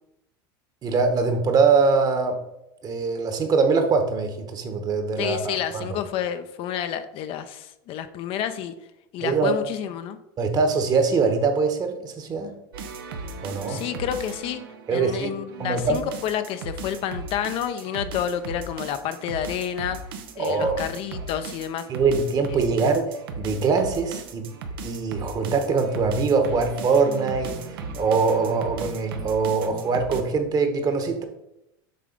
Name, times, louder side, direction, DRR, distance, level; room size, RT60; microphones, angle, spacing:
voice 1, 0.8-2.4 2.8-5.8 9.2-9.6 10.4-12.5 13.4-13.8 14.9-15.3 15.6-16.0 20.4-20.8 21.9-24.5 24.8-31.2, right 4 dB, 35° right, 6 dB, 1.2 m, -23 dB
voice 2, 5.2-8.7 9.1-10.2 13.7-14.6 14.9-20.0 20.4-21.9, left 9 dB, 50° left, 9 dB, 0.6 m, -29 dB
sound 1, 12.7-30.2, right 3 dB, 85° right, 0.9 m, -37 dB
6.7 x 3.8 x 5.2 m, 0.87 s
supercardioid pair, 110°, 12 cm